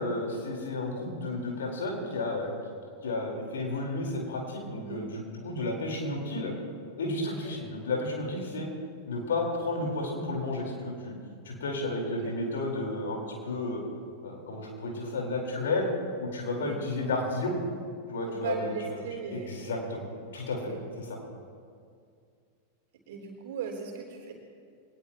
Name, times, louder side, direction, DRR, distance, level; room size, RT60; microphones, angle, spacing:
voice 1, 0.0-2.5 3.0-6.5 7.0-8.7 9.1-11.2 11.4-13.8 14.2-15.9 16.2-17.6 18.1-18.7 19.3-20.0 20.3-20.7 21.0-21.2, left 2 dB, 65° left, 0 dB, 4.4 m, -32 dB
voice 2, 4.8-5.1 7.2-7.7 12.1-12.3 16.6-16.8 18.3-19.9 20.7-20.8 23.1-24.3, right 6 dB, 55° right, 0 dB, 3.6 m, -38 dB
23.5 x 20.0 x 3.1 m, 2.2 s
figure-of-eight pair, 90°, 0 cm